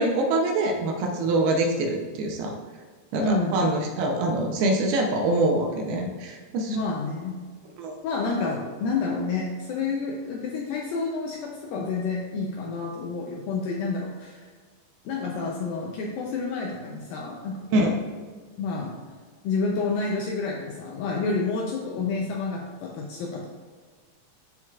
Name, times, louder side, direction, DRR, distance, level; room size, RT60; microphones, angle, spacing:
voice 1, 0.0-2.5 3.1-6.8 7.8-7.9 17.7-17.9, right 2 dB, 80° right, 2 dB, 2.5 m, -24 dB
voice 2, 3.2-3.7 6.7-7.4 8.0-14.5 15.1-18.0 18.6-19.0 19.4-23.5, left 4 dB, 80° left, 0 dB, 2.1 m, -29 dB
12.5 x 4.7 x 2.4 m, 1.5 s
omnidirectional pair, 4.7 m